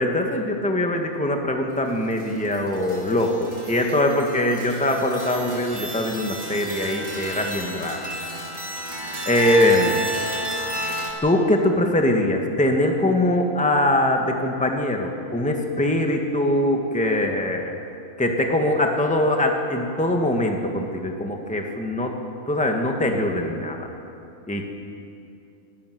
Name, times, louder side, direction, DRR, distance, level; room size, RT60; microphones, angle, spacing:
voice 1, 0.0-8.0 9.2-10.0 11.2-17.7 18.2-22.1 22.5-23.8 24.5-24.7, left 1 dB, 5° left, 2 dB, 1.7 m, -22 dB
sound 1, 2.2-11.1, right 1 dB, 55° right, 3.1 m, -32 dB
24.0 x 12.5 x 9.5 m, 2.6 s
omnidirectional pair, 1.4 m